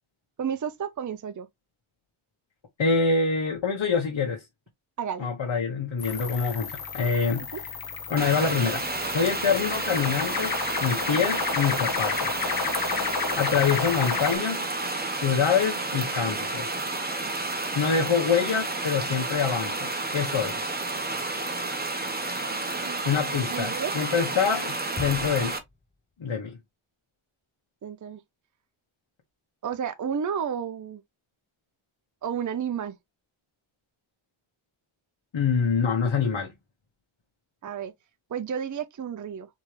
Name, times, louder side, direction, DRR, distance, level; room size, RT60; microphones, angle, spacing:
voice 1, 0.4-1.5 5.0-5.3 22.8-23.0 23.5-23.9 27.8-28.2 29.6-31.0 32.2-33.0 37.6-37.9 38.3-39.5, right 8 dB, 40° right, 0.6 m, -31 dB
voice 2, 2.8-4.4 5.2-7.5 8.1-12.4 13.3-14.6 15.2-16.8 17.7-20.5 23.0-25.5 26.2-26.6 35.3-36.5, left 5 dB, 60° left, 1.4 m, -26 dB
sound 1, 6.0-14.4, left 6 dB, 45° left, 1.0 m, -31 dB
sound 2, 8.2-25.6, right 2 dB, 20° right, 1.1 m, -31 dB
Bass drum, 25.0-26.4, left 3 dB, 15° left, 0.7 m, -41 dB
4.5 x 3.3 x 3.3 m
wide cardioid pair, 100°, 50 cm